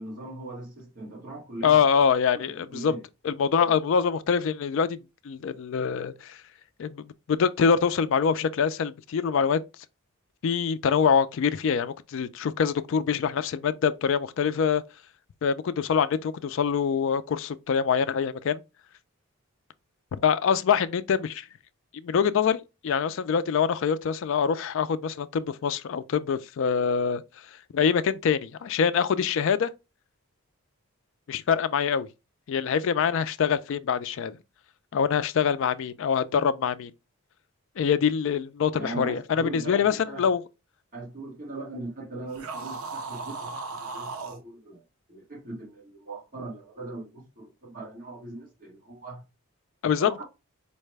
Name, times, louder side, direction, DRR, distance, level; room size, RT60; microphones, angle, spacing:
voice 1, 0.0-1.8 2.3-2.4 2.7-3.0 3.6-3.7 38.7-40.2 40.9-44.8 45.1-49.2 50.0-50.2, right 2 dB, 40° right, 1.3 m, -40 dB
voice 2, 1.6-3.0 3.2-5.0 5.2-6.4 6.8-9.6 10.4-14.8 15.4-18.6 20.2-21.5 22.0-27.2 27.7-29.7 31.3-32.1 32.5-34.4 34.9-36.9 37.8-40.4 49.8-50.2, left 6 dB, 55° left, 0.3 m, -25 dB
sound 1, 42.3-44.4, right 4 dB, 70° right, 0.6 m, -36 dB
4.7 x 2.1 x 3.2 m
head